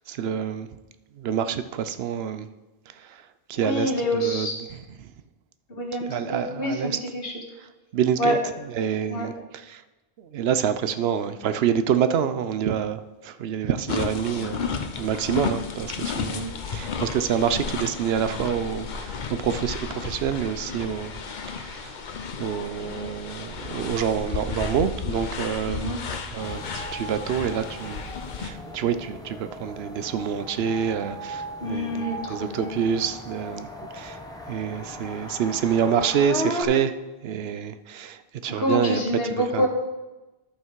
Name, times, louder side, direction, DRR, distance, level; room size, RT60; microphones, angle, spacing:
voice 1, 0.1-0.7 1.2-2.5 3.5-4.5 6.1-6.9 7.9-8.4 8.7-9.3 9.7-9.8 10.3-14.6 15.0-21.2 21.6-21.9 22.4-26.0 26.3-28.0 28.4-33.7 33.9-34.2 34.5-36.9 37.2-39.0 39.5-39.7, right 8 dB, 80° right, 11 dB, 0.8 m, -27 dB
voice 2, 3.6-4.6 5.7-7.4 8.2-8.4 9.1-9.3 16.2-16.5 25.6-26.0 31.6-32.8 38.6-39.7, equal, 65° left, 1 dB, 1.7 m, -27 dB
sound 1, 13.9-28.5, left 5 dB, 50° left, 0.8 m, -33 dB
sound 2, 26.4-36.6, equal, 5° left, 1.0 m, -37 dB
11.5 x 5.7 x 4.6 m, 1.1 s
omnidirectional pair, 1.0 m